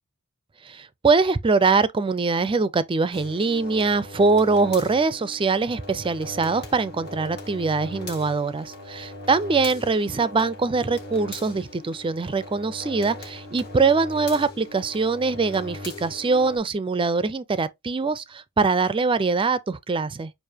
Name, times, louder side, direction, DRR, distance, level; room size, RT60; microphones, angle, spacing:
voice 1, 0.6-20.3, right 4 dB, 25° right, 0.4 m, -23 dB
sound 1, 3.1-16.6, left 2 dB, 50° left, 1.7 m, -39 dB
6.6 x 2.6 x 2.8 m
head